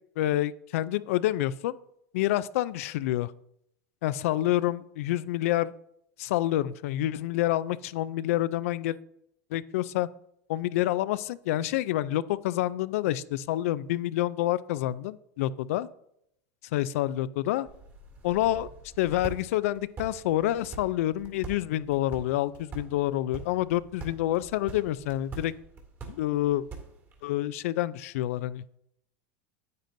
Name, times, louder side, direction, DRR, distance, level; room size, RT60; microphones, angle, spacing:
voice 1, 0.2-1.8 2.1-3.3 4.0-5.7 6.2-9.0 9.5-10.1 10.5-15.9 16.7-17.7 18.2-18.7 19.0-25.5 26.1-26.6 27.2-28.8, left 14 dB, 75° left, 17 dB, 0.4 m, -28 dB
sound 1, 17.7-27.2, right 4 dB, 30° right, 2.2 m, -45 dB
9.4 x 8.9 x 2.6 m, 0.76 s
supercardioid pair, 125°, 8 cm